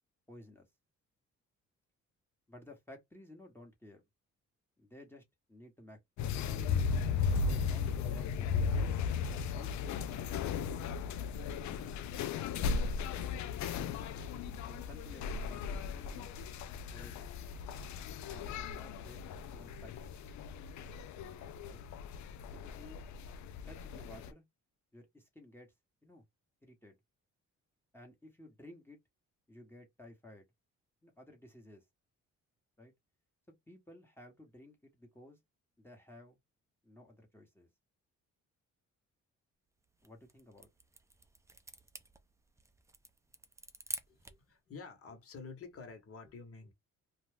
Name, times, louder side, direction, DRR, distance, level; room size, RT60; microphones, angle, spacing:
voice 1, 0.3-0.7 2.5-4.0 4.8-5.2 5.5-6.9 7.4-8.9 9.2-10.3 11.6-12.4 14.6-16.3 16.9-17.3 18.3-20.1 21.6-21.8 22.6-23.0 23.7-24.4 24.9-25.7 26.0-26.2 26.6-27.0 27.9-29.0 29.5-30.4 31.0-31.8 32.8-32.9 33.7-35.4 35.8-36.4 36.8-37.7 40.0-40.7, left 1 dB, 5° left, 1.1 m, -55 dB
sound 1, 6.2-24.3, left 5 dB, 70° left, 0.4 m, -36 dB
sound 2, 39.8-44.5, right 2 dB, 10° right, 0.5 m, -48 dB
voice 2, 44.1-46.7, left 4 dB, 50° left, 1.2 m, -49 dB
2.5 x 2.3 x 3.3 m
cardioid pair, 90°, 30 cm